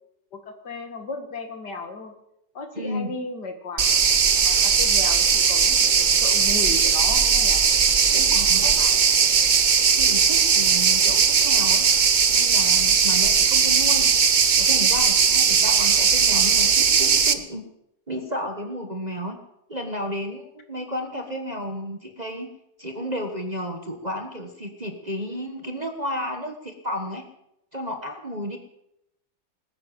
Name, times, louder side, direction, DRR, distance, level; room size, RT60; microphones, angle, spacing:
voice 1, 0.3-2.1 2.5-3.9 4.4-7.7 8.1-8.2 8.6-9.0, left 3 dB, 65° left, 7 dB, 2.4 m, -35 dB
voice 2, 2.7-3.1 8.1-8.8 9.9-11.9 12.3-14.1 14.6-17.6 18.1-19.4 19.7-22.5 22.8-27.2 27.7-28.6, equal, 25° right, 4 dB, 1.3 m, -32 dB
sound 1, 3.8-17.3, right 6 dB, 50° right, 0.5 m, -18 dB
19.5 x 10.0 x 7.3 m, 0.81 s
omnidirectional pair, 2.0 m